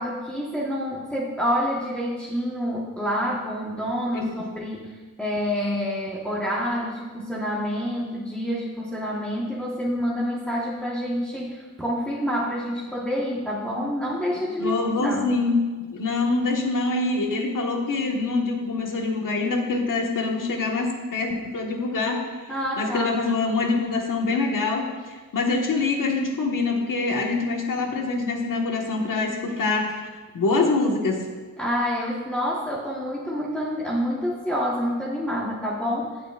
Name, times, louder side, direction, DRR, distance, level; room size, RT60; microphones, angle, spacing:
voice 1, 0.0-4.9 5.2-15.3 22.5-23.2 31.6-36.1, equal, 5° left, -6 dB, 1.3 m, -27 dB
voice 2, 14.6-15.6 15.9-22.2 22.8-30.0 30.3-31.2, left 3 dB, 90° left, 1 dB, 1.6 m, -25 dB
17.0 x 8.0 x 2.5 m, 1.4 s
wide cardioid pair, 145°, 31 cm